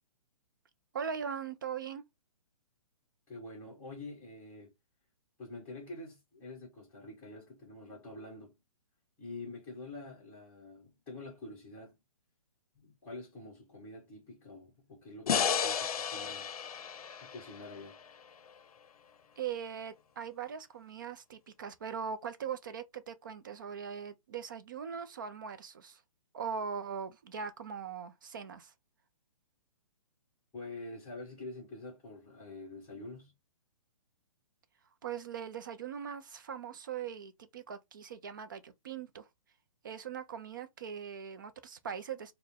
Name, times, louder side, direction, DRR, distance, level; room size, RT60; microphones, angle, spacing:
voice 1, 0.9-2.0 19.4-26.0 26.3-28.7 35.0-39.2 39.8-42.3, right 7 dB, 35° right, 0.4 m, -40 dB
voice 2, 3.3-4.7 5.4-8.6 9.2-11.9 12.7-16.5 17.2-18.0 30.5-33.3, left 2 dB, 5° left, 1.5 m, -46 dB
sound 1, 15.3-18.5, left 7 dB, 85° left, 0.5 m, -33 dB
4.2 x 2.2 x 3.4 m
hypercardioid pair, 175°, 18 cm